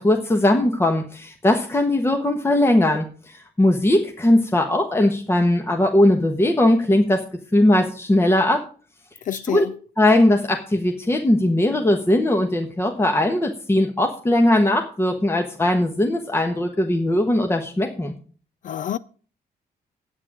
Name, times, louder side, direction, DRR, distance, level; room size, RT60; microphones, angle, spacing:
voice 1, 0.0-7.2 7.5-8.6 9.3-9.6 10.0-18.1, left 1 dB, 15° left, 1.2 m, -19 dB
voice 2, 9.3-9.7 18.6-19.0, left 10 dB, 50° left, 0.4 m, -27 dB
9.6 x 8.8 x 6.1 m
cardioid pair, 135°, 17 cm